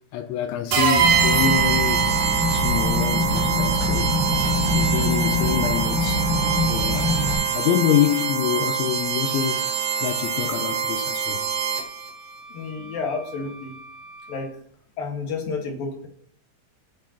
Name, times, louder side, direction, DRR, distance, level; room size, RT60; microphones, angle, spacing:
voice 1, 0.1-2.2 2.5-4.2 4.4-6.3 6.7-7.2 7.5-9.6 10.0-11.4, left 10 dB, 85° left, 2.7 m, -26 dB
sound 1, 0.7-12.1, right 7 dB, 60° right, 2.8 m, -24 dB
sound 2, 1.0-7.3, left 2 dB, 25° left, 4.8 m, -24 dB
Wind instrument woodwind instrument, 5.7-14.5, right 1 dB, 85° right, 4.3 m, -46 dB
voice 2, 12.5-13.7 14.3-14.5 15.0-16.1, left 4 dB, 60° left, 2.8 m, -30 dB
19.0 x 8.3 x 2.9 m
omnidirectional pair, 5.8 m